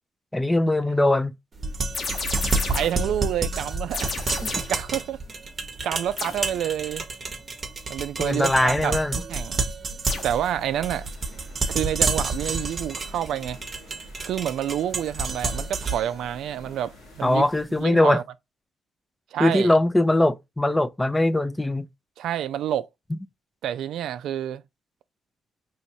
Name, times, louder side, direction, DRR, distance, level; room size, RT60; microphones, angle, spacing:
voice 1, 0.3-1.3 4.4-4.6 8.2-9.2 17.2-18.2 19.4-21.9 23.1-23.2, left 1 dB, 10° left, 0.4 m, -21 dB
sound 1, 1.6-17.6, right 3 dB, 40° right, 0.8 m, -30 dB
sound 2, 1.9-3.1 3.9-4.8 6.2-6.5 10.1-10.4, left 4 dB, 50° left, 0.9 m, -32 dB
voice 2, 2.7-4.1 4.5-5.2 5.8-7.0 7.9-8.9 9.3-9.6 10.2-11.1 11.7-13.6 14.2-17.4 17.8-18.2 19.3-19.7 22.2-22.9 23.6-24.6, right 10 dB, 75° right, 0.3 m, -28 dB
sound 3, 10.3-17.6, left 4 dB, 85° left, 1.5 m, -51 dB
4.5 x 3.1 x 2.7 m
cardioid pair, 90°, 0 cm